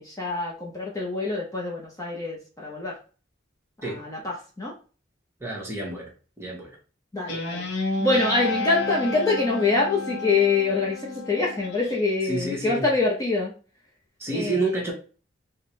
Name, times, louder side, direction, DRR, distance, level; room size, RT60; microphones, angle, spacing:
voice 1, 0.0-3.0 3.8-4.7 7.1-7.7 8.0-13.5 14.3-14.8, left 3 dB, 20° left, -3 dB, 0.6 m, -25 dB
voice 2, 5.4-6.1 6.4-6.8 12.3-12.9 14.2-14.9, right 2 dB, 15° right, -3 dB, 1.1 m, -29 dB
Guitar, 7.3-12.0, left 3 dB, 65° left, 0.7 m, -31 dB
4.2 x 2.2 x 3.0 m, 0.37 s
head